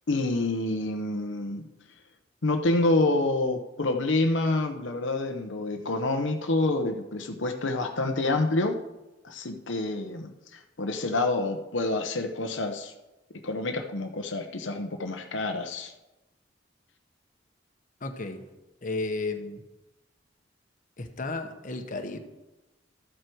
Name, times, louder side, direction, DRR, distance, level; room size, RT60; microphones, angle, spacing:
voice 1, 0.1-1.7 2.4-8.8 9.2-12.9 13.4-15.9, left 2 dB, 80° left, 5 dB, 0.9 m, -27 dB
voice 2, 18.0-18.5 18.8-19.6 21.0-22.2, left 3 dB, 45° left, 6 dB, 1.1 m, -33 dB
13.5 x 7.9 x 4.6 m, 1.0 s
head